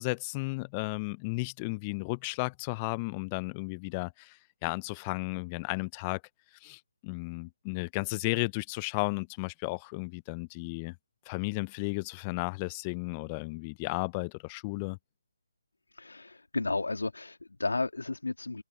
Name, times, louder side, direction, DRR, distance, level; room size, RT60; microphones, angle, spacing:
voice 1, 0.0-6.2 6.6-10.9 11.3-15.0, left 28 dB, 20° left, 0.6 m, -34 dB
voice 2, 15.9-18.6, left 3 dB, 75° left, 3.5 m, -33 dB
open air
figure-of-eight pair, 145°, 0 cm